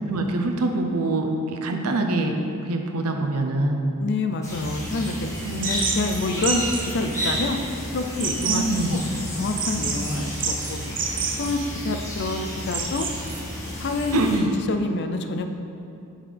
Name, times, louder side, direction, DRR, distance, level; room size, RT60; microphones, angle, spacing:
voice 1, 0.0-2.4 2.7-3.9 5.4-5.7 8.5-9.0 14.1-14.5, right 2 dB, 80° right, 4 dB, 0.7 m, -24 dB
voice 2, 4.0-5.1 5.7-7.6 7.9-8.6 8.9-9.0 9.4-10.8 11.4-13.1 13.8-14.2 14.7-15.5, left 3 dB, 50° left, 6 dB, 0.5 m, -27 dB
sound 1, 4.4-14.4, equal, 15° left, 1.5 m, -32 dB
sound 2, 5.6-13.4, right 5 dB, 40° right, 0.7 m, -30 dB
7.4 x 7.0 x 3.4 m, 2.7 s
head